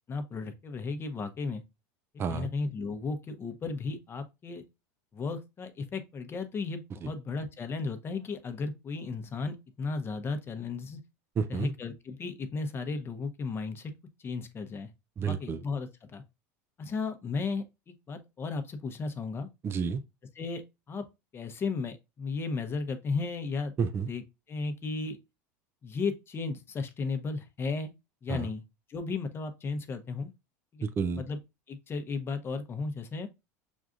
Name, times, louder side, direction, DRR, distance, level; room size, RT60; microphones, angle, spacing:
voice 1, 0.1-1.6 2.3-4.6 5.1-11.0 11.5-13.9 14.2-14.9 15.2-16.2 16.8-19.5 20.4-21.1 21.3-23.7 24.1-25.2 25.8-27.9 28.2-28.6 28.9-30.3 30.7-30.8 31.2-31.4 31.7-33.3, left 4 dB, 30° left, 0.8 m, -35 dB
voice 2, 11.4-11.7 15.2-15.6 19.6-20.0 23.8-24.1 28.3-28.5 30.8-31.2, right 6 dB, 30° right, 0.4 m, -30 dB
6.2 x 2.4 x 2.4 m
supercardioid pair, 100°, 8 cm